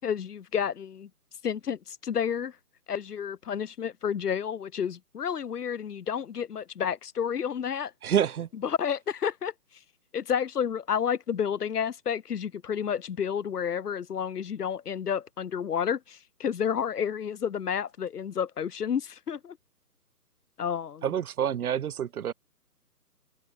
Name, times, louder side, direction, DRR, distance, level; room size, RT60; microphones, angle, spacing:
voice 1, 0.0-1.1 1.4-2.5 2.9-7.9 8.5-9.5 10.1-19.6 20.6-21.1, left 8 dB, 70° left, 0.9 m, -30 dB
voice 2, 8.0-8.5 21.0-22.3, right 9 dB, 65° right, 0.6 m, -27 dB
figure-of-eight pair, 155°, 48 cm